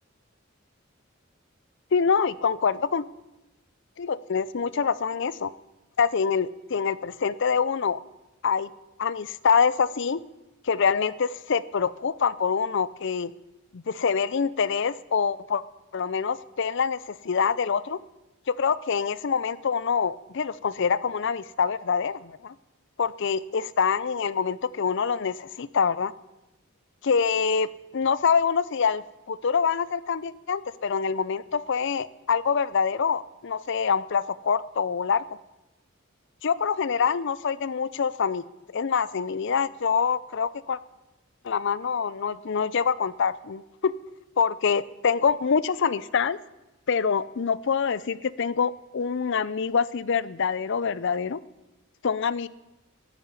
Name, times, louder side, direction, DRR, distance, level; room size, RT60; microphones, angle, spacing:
voice 1, 1.9-3.0 4.0-5.5 6.0-8.0 8.4-8.7 9.0-10.2 10.6-13.3 13.7-15.6 15.9-18.0 18.5-22.5 23.0-26.1 27.0-35.2 36.4-38.4 38.7-40.8 41.4-43.9 44.4-46.4 46.9-51.4 52.0-52.5, left 6 dB, 65° left, 19 dB, 0.5 m, -25 dB
11.0 x 9.7 x 8.9 m, 1.0 s
head